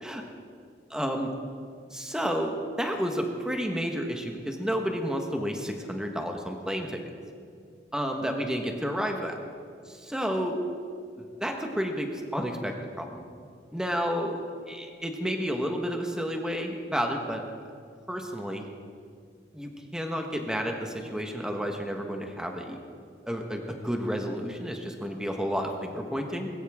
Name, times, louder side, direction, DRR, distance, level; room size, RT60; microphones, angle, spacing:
voice 1, 0.9-1.3 1.9-7.0 7.9-9.4 9.9-10.6 11.4-13.2 13.7-14.4 14.7-17.4 18.1-18.7 19.5-22.8 23.3-26.5, equal, 5° right, 3 dB, 1.3 m, -31 dB
20.0 x 16.5 x 3.6 m, 2.3 s
head